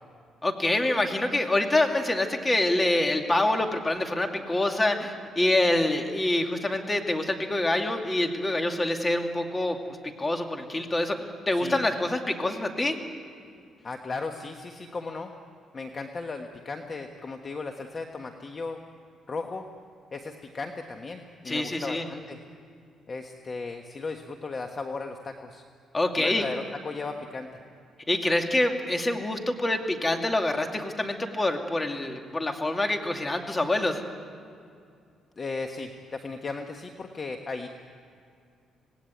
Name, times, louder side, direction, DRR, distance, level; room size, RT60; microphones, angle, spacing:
voice 1, 0.4-13.0 21.5-22.1 25.9-26.4 28.1-34.0, left 1 dB, 20° left, 4 dB, 2.5 m, -26 dB
voice 2, 13.8-15.3 15.7-18.8 19.3-19.7 20.1-22.4 23.1-25.6 26.2-27.5 35.4-37.7, left 3 dB, 35° left, 4 dB, 1.4 m, -36 dB
26.5 x 19.0 x 9.2 m, 2.4 s
cardioid pair, 105°, 0 cm